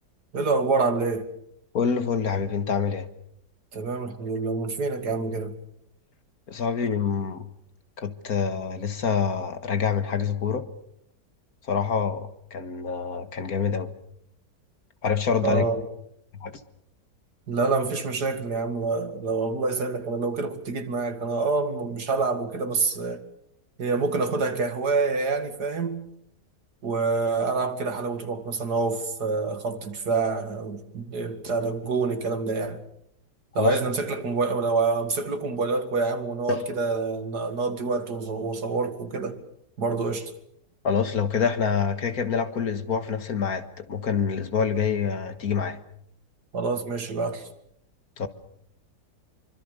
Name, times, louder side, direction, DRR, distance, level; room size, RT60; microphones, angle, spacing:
voice 1, 0.3-1.3 3.7-5.5 15.4-15.8 17.5-23.2 23.8-26.0 26.8-32.8 33.5-39.4 39.8-40.3 46.5-47.5, right 4 dB, 75° right, 2.8 m, -27 dB
voice 2, 1.7-3.1 6.5-7.5 8.0-10.7 11.7-13.9 15.0-15.6 16.4-16.5 33.6-33.8 36.5-36.7 40.8-45.8 48.2-48.3, left 6 dB, 60° left, 2.1 m, -26 dB
26.0 x 24.5 x 6.8 m
omnidirectional pair, 1.8 m